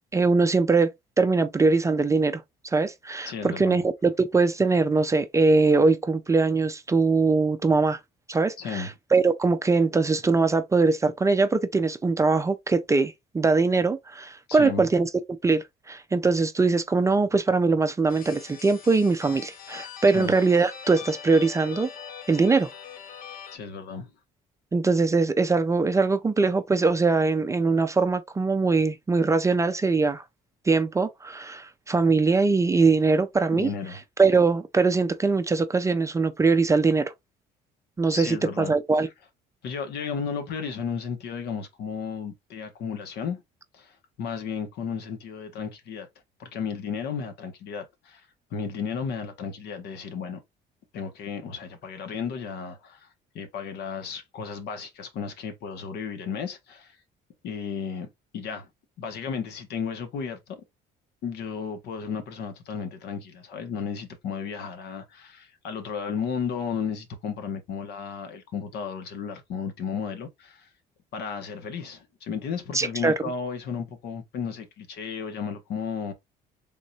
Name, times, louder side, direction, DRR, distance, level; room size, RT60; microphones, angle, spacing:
voice 1, 0.1-0.9 1.2-8.0 8.3-15.1 15.4-21.9 22.3-22.7 24.7-30.2 30.7-33.7 34.2-37.1 38.0-39.1 72.7-73.1, right 4 dB, 20° right, 0.4 m, -22 dB
voice 2, 3.2-3.8 8.6-8.9 14.5-14.9 20.1-20.3 23.5-24.1 33.5-34.0 38.1-39.1 39.6-43.4 43.7-46.1 46.4-48.3 48.5-50.4 50.9-53.1 53.3-57.0 57.4-58.1 58.3-58.7 59.0-60.6 61.2-70.7 71.1-76.1, left 6 dB, 75° left, 1.1 m, -34 dB
sound 1, 18.1-23.6, left 8 dB, 60° left, 0.7 m, -42 dB
3.6 x 3.0 x 2.7 m
cardioid pair, 110°, 17 cm